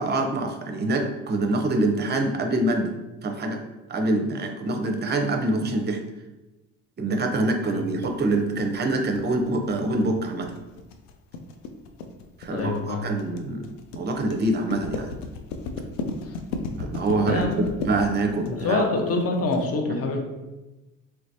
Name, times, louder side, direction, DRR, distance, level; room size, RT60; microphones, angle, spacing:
voice 1, 0.0-2.9 3.2-3.6 3.9-6.0 7.0-10.5 12.4-15.1 16.8-17.5 17.8-18.8 19.9-20.0, right 2 dB, 25° right, 5 dB, 0.6 m, -25 dB
sound 1, 8.0-19.6, left 3 dB, 85° left, 0.5 m, -34 dB
voice 2, 12.5-13.1 16.2-16.3 17.2-17.7 18.4-20.2, left 3 dB, 40° left, 3 dB, 0.7 m, -26 dB
3.2 x 3.2 x 2.6 m, 1.1 s
hypercardioid pair, 65°, 38 cm